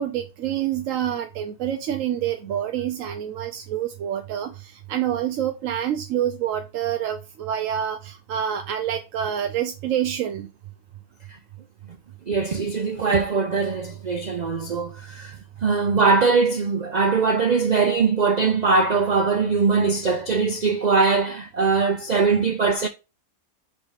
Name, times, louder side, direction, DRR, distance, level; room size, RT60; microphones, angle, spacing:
voice 1, 0.0-10.5, right 10 dB, 70° right, 1.0 m, -27 dB
voice 2, 12.3-22.9, right 4 dB, 85° right, 0.3 m, -21 dB
5.1 x 4.1 x 4.8 m
omnidirectional pair, 1.5 m